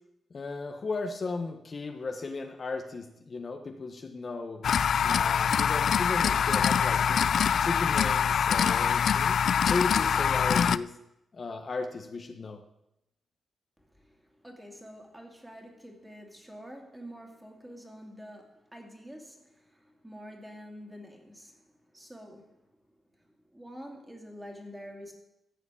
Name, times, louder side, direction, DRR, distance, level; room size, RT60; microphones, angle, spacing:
voice 1, 0.3-4.6 5.0-7.3 7.6-9.4 9.7-10.9 11.3-12.6, left 3 dB, 40° left, 4 dB, 1.1 m, -35 dB
sound 1, 4.6-10.8, left 7 dB, 65° left, 0.3 m, -24 dB
voice 2, 13.8-22.7 23.2-25.1, equal, 10° right, 1 dB, 2.6 m, -47 dB
14.0 x 5.1 x 8.4 m, 0.86 s
cardioid pair, 95°, 0 cm